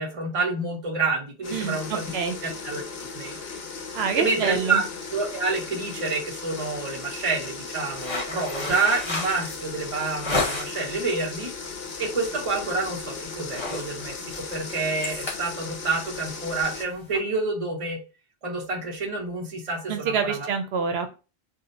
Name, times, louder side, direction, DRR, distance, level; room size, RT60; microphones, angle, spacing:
voice 1, 0.0-2.1 2.4-2.8 3.1-3.4 4.2-4.8 5.1-11.5 12.0-18.0 18.4-20.5, right 3 dB, 35° right, 0 dB, 0.8 m, -28 dB
sound 1, 1.4-16.8, left 5 dB, 75° left, 0.9 m, -37 dB
voice 2, 3.9-4.8 19.9-21.1, right 6 dB, 80° right, 6 dB, 0.8 m, -26 dB
sound 2, 7.9-10.9 11.4-11.7 12.1-12.3 12.6-13.0 13.3-17.2, left 2 dB, 30° left, 0.8 m, -32 dB
2.6 x 2.1 x 3.9 m, 0.31 s
omnidirectional pair, 1.1 m